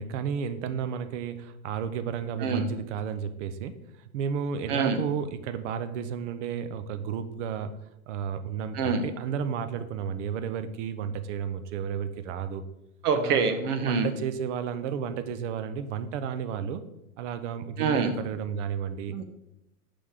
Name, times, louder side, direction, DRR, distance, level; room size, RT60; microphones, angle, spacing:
voice 1, 0.0-7.7 8.1-12.6 13.1-13.4 13.9-16.8 17.2-19.2, right 7 dB, 55° right, 11 dB, 0.6 m, -32 dB
voice 2, 13.0-14.1 17.8-18.1 19.1-19.2, right 5 dB, 90° right, 7 dB, 1.0 m, -25 dB
5.7 x 5.1 x 3.6 m, 0.90 s
supercardioid pair, 160°, 45 cm